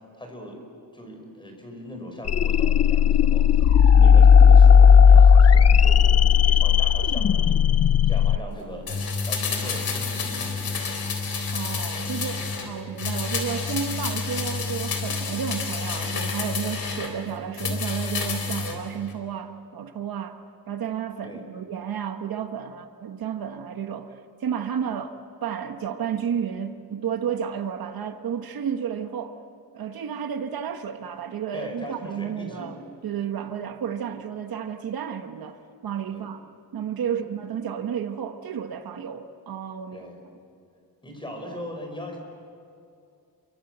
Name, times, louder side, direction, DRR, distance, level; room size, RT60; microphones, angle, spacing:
voice 1, 0.2-0.6 0.9-7.7 8.0-10.5 21.2-21.4 31.5-32.7 36.1-36.3 37.0-37.2 39.9-40.2 41.0-42.2, equal, 15° left, 5.2 m, -39 dB
sound 1, 2.2-8.4, left 7 dB, 45° left, 0.5 m, -15 dB
sound 2, 8.9-12.7 13.0-17.1 17.5-18.8 19.1-19.2, left 4 dB, 70° left, 3.9 m, -29 dB
voice 2, 11.5-20.4 20.7-24.1 24.4-29.4 29.7-36.4 36.7-40.1, right 8 dB, 70° right, 1.3 m, -32 dB
28.5 x 24.0 x 8.0 m
wide cardioid pair, 170°, 37 cm